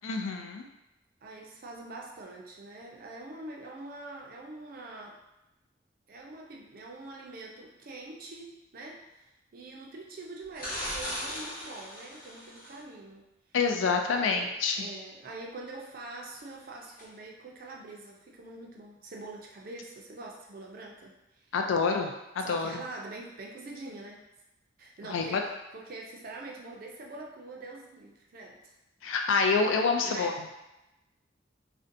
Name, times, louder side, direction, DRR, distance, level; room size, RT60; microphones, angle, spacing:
voice 1, 0.0-0.7 13.5-14.9 21.5-22.8 25.0-25.4 29.0-30.3, left 4 dB, 85° left, 3 dB, 0.4 m, -27 dB
voice 2, 1.2-5.2 6.1-13.2 14.1-21.5 22.4-24.2 24.8-25.4 25.7-28.7 30.0-30.4, right 2 dB, 50° right, -1 dB, 0.4 m, -44 dB
sound 1, 10.5-12.8 17.0-17.1, equal, 45° left, 0.9 m, -37 dB
2.5 x 2.1 x 2.5 m, 0.94 s
head